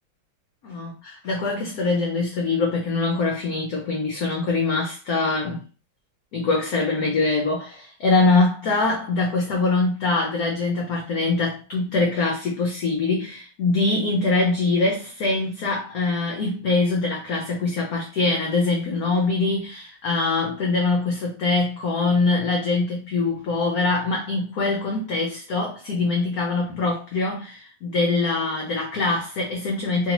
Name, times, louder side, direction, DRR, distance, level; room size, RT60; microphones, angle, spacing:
voice 1, 0.6-5.6 6.3-30.1, left 3 dB, 70° left, 0.9 m, -23 dB
3.1 x 2.7 x 2.9 m
omnidirectional pair, 2.1 m